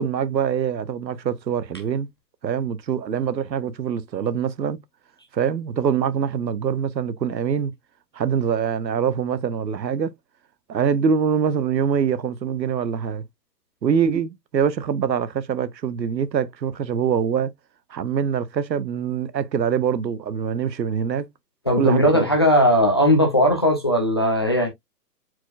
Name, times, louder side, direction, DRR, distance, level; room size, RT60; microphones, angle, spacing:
voice 1, 0.0-2.1 2.4-4.8 5.3-7.7 8.1-10.1 10.7-13.2 13.8-17.5 17.9-21.3 21.8-22.3, right 7 dB, 85° right, 0.9 m, -24 dB
voice 2, 21.7-24.7, equal, 20° left, 0.4 m, -18 dB
4.5 x 4.3 x 2.4 m
hypercardioid pair, 135°, 50 cm